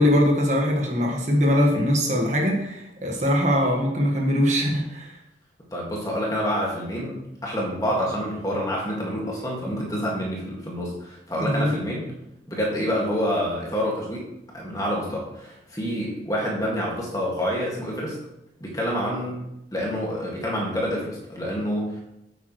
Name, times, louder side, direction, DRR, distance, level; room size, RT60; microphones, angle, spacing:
voice 1, 0.0-5.2 11.3-11.7, equal, 40° right, -1 dB, 1.6 m, -22 dB
voice 2, 5.7-12.1 12.5-14.3 14.5-18.2 18.6-19.4 19.7-22.0, equal, 20° left, -3 dB, 2.0 m, -27 dB
9.2 x 8.5 x 3.2 m, 0.86 s
head